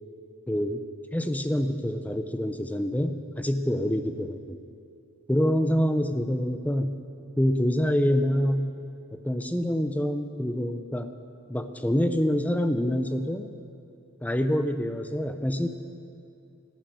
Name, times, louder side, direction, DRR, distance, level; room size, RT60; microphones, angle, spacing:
voice 1, 0.5-0.8 1.1-4.6 5.3-7.0 7.4-8.7 9.1-11.1 11.5-13.5 14.2-15.7, equal, 5° left, 8 dB, 0.6 m, -26 dB
13.0 x 11.0 x 9.4 m, 2.5 s
head